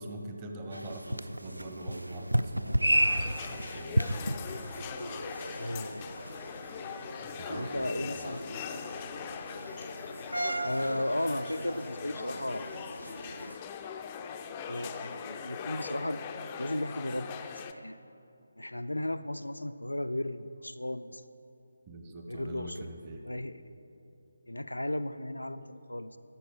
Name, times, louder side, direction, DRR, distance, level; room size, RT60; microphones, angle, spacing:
voice 1, 0.0-4.2 7.4-8.3 21.9-23.2, right 1 dB, 20° right, 3 dB, 0.8 m, -43 dB
Train Passing By, 0.7-13.6, right 1 dB, 85° right, 0.3 m, -34 dB
sound 1, 2.9-17.7, left 7 dB, 20° left, 0.4 m, -41 dB
voice 2, 5.6-6.1 7.5-8.5 10.6-12.8 14.7-16.2 16.6-17.4 17.7-18.0 18.6-21.2 22.3-22.9 23.2-23.6 24.5-26.2, left 1 dB, 85° left, 11 dB, 0.4 m, -35 dB
13.0 x 6.3 x 5.0 m, 2.7 s
figure-of-eight pair, 150°, 0 cm